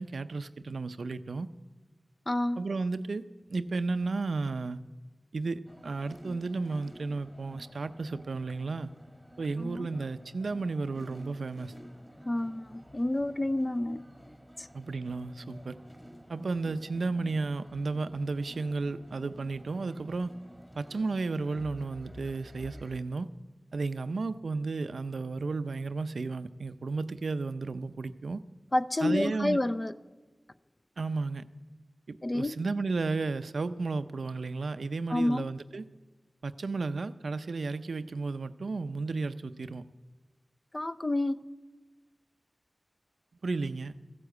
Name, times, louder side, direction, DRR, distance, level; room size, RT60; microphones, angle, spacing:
voice 1, 0.0-1.5 2.6-3.2 3.5-4.8 5.3-8.9 9.4-11.7 14.7-15.8 16.3-20.3 20.8-23.3 23.7-28.4 29.0-29.6 31.0-31.4 32.1-35.9 36.4-39.8 43.4-43.9, right 3 dB, 85° right, 0.5 m, -33 dB
voice 2, 2.3-2.6 9.6-9.9 12.3-14.1 14.6-14.7 28.7-29.9 32.2-32.5 35.1-35.5 40.7-41.4, left 1 dB, 30° left, 0.5 m, -29 dB
sound 1, 5.7-23.0, equal, 5° right, 1.4 m, -51 dB
14.5 x 9.8 x 8.0 m
wide cardioid pair, 50°, 0 cm